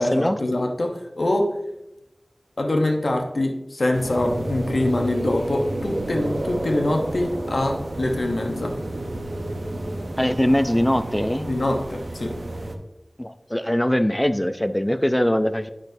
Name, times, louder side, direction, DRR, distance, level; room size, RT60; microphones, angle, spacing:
voice 1, 0.0-1.6 2.6-8.8 11.4-12.3, left 1 dB, 80° left, 3 dB, 0.9 m, -24 dB
sound 1, 3.9-12.8, right 1 dB, 75° right, 0.7 m, -30 dB
voice 2, 10.2-11.5 13.2-15.7, equal, 15° left, 10 dB, 0.4 m, -21 dB
8.8 x 6.1 x 2.7 m, 0.92 s
wide cardioid pair, 45°, 0 cm